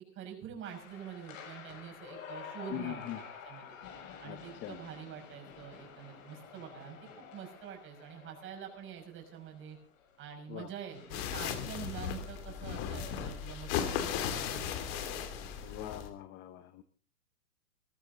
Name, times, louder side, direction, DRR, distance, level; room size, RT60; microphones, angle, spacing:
voice 1, 0.1-3.8 4.2-9.8 10.2-16.0, right 8 dB, 25° right, 2 dB, 6.0 m, -46 dB
sound 1, 0.6-16.0, left 7 dB, 60° left, 7.0 m, -51 dB
voice 2, 2.7-3.2 4.2-4.8 10.5-10.7 15.6-16.8, left 14 dB, 25° left, 12 dB, 0.9 m, -42 dB
sound 2, 11.1-16.1, left 8 dB, 40° left, 2.9 m, -36 dB
20.5 x 13.5 x 3.9 m, 0.41 s
hypercardioid pair, 135°, 45 cm